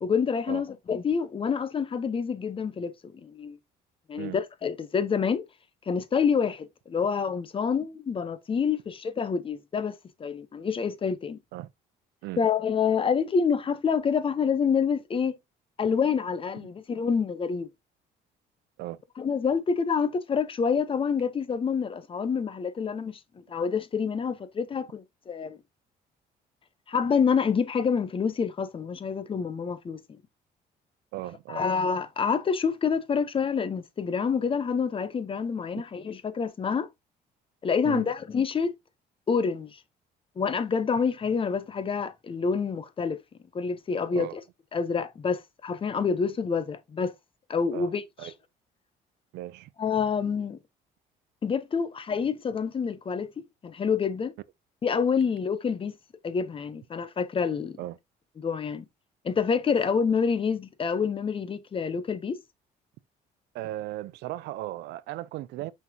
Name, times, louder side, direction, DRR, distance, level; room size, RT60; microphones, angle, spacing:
voice 1, 0.0-3.6 4.1-5.4 5.9-9.9 10.2-11.4 12.4-15.3 15.8-17.7 19.2-25.6 26.9-30.0 31.5-36.9 37.6-38.7 39.3-39.8 40.4-43.2 43.5-44.3 44.7-47.1 47.5-48.3 49.8-50.6 51.4-54.3 54.8-56.0 56.2-57.8 58.4-58.8 59.2-62.4, left 6 dB, 30° left, 0.9 m, -27 dB
voice 2, 31.1-31.6 37.8-38.1 44.1-44.4 47.7-47.9 48.2-48.3 49.3-49.7 57.8-58.0 63.5-65.7, right 16 dB, 80° right, 0.6 m, -36 dB
5.9 x 5.7 x 2.9 m
cardioid pair, 110°, 17 cm